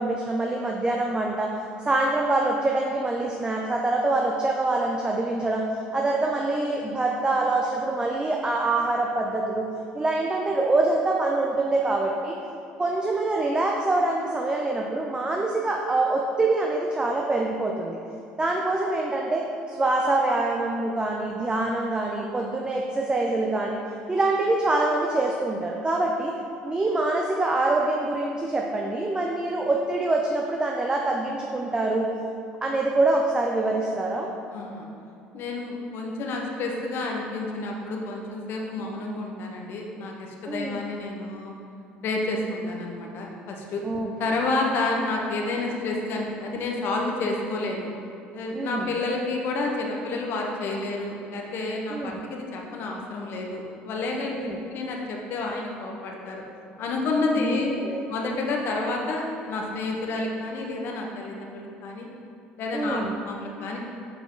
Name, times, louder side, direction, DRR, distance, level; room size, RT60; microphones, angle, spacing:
voice 1, 0.0-1.5 1.8-5.6 5.9-9.6 9.9-12.4 12.8-18.0 18.4-23.8 24.1-26.3 26.6-32.1 32.6-34.3 40.5-40.8 43.8-44.1 48.5-48.9 51.9-52.2 54.3-54.6 57.4-58.0 62.7-63.1, right 2 dB, 20° right, 0 dB, 0.7 m, -25 dB
voice 2, 34.5-34.9 35.3-41.5 42.0-43.8 44.2-47.9 48.3-56.4 56.8-57.7 58.1-62.1 62.6-63.8, left 2 dB, 60° left, 0 dB, 1.2 m, -30 dB
7.8 x 4.9 x 4.0 m, 2.6 s
supercardioid pair, 75°, 4 cm